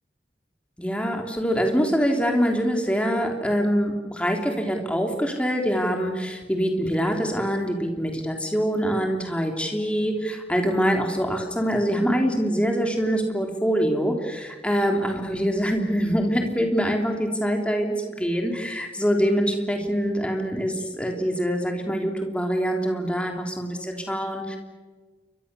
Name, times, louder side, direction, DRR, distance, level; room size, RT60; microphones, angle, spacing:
voice 1, 0.8-24.6, equal, 5° left, 2 dB, 3.3 m, -24 dB
29.0 x 24.0 x 7.0 m, 1.4 s
head